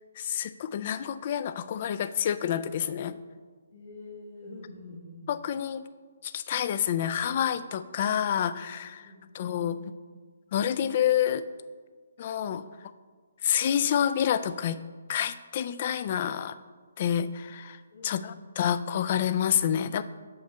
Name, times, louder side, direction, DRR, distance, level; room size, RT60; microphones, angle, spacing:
voice 1, 0.2-3.2 5.3-5.8 6.2-9.1 9.3-9.8 10.5-11.4 12.2-12.6 13.4-14.8 15.1-16.6 17.0-20.0, left 9 dB, 40° left, 12 dB, 0.3 m, -28 dB
voice 2, 3.7-5.3 9.0-9.9 12.5-12.8 17.9-18.4, left 2 dB, 65° left, -8 dB, 1.7 m, -46 dB
6.6 x 5.5 x 3.4 m, 1.5 s
figure-of-eight pair, 140°, 0 cm